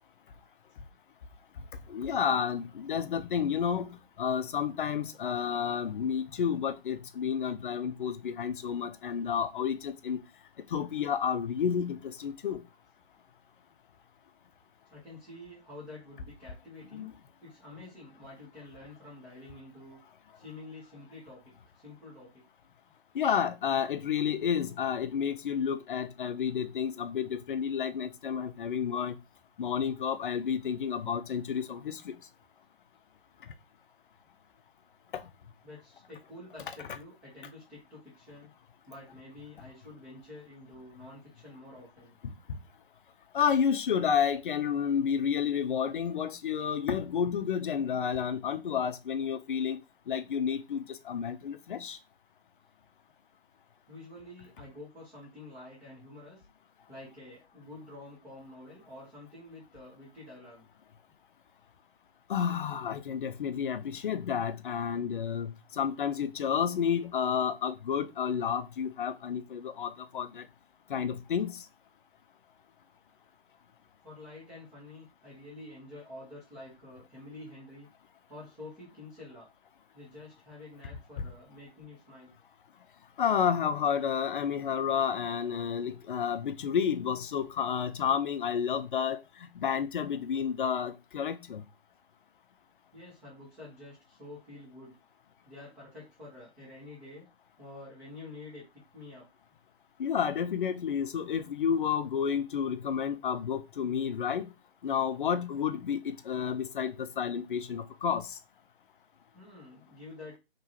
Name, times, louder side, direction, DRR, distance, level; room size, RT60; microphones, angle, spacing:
voice 1, 1.9-10.2 10.7-12.6 16.9-17.1 23.1-29.1 29.6-32.1 35.1-35.2 43.3-49.8 50.1-52.0 62.3-70.4 70.9-71.6 83.2-89.2 89.6-91.6 100.0-104.5 104.8-108.3, left 7 dB, 50° left, 0.6 m, -30 dB
voice 2, 14.9-17.1 17.4-20.0 20.3-21.4 21.7-22.4 35.6-38.5 38.9-42.2 53.9-56.4 56.9-60.6 74.0-77.9 78.3-79.5 79.9-82.3 92.9-95.0 95.5-97.2 97.6-99.3 109.3-110.4, left 2 dB, 5° right, 0.6 m, -48 dB
4.5 x 3.0 x 2.7 m
hypercardioid pair, 155°, 32 cm